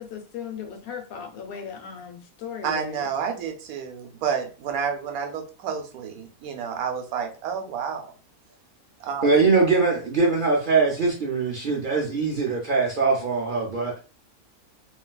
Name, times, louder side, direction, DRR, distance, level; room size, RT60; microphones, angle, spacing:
voice 1, 0.0-3.0, left 7 dB, 85° left, 5 dB, 1.1 m, -37 dB
voice 2, 2.6-8.1 9.0-9.4, right 7 dB, 85° right, 5 dB, 1.1 m, -30 dB
voice 3, 9.2-14.0, right 4 dB, 60° right, -2 dB, 0.5 m, -22 dB
3.1 x 2.6 x 2.2 m, 0.36 s
omnidirectional pair, 1.5 m